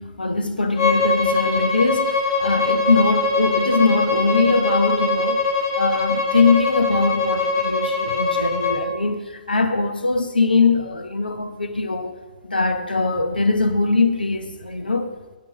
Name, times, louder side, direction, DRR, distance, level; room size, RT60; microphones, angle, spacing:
voice 1, 0.0-5.5 5.7-12.2 12.5-15.4, left 3 dB, 85° left, 7 dB, 0.9 m, -21 dB
Bowed string instrument, 0.8-8.8, left 3 dB, 40° left, 1.6 m, -22 dB
8.8 x 5.4 x 7.3 m, 1.2 s
figure-of-eight pair, 125°, 5 cm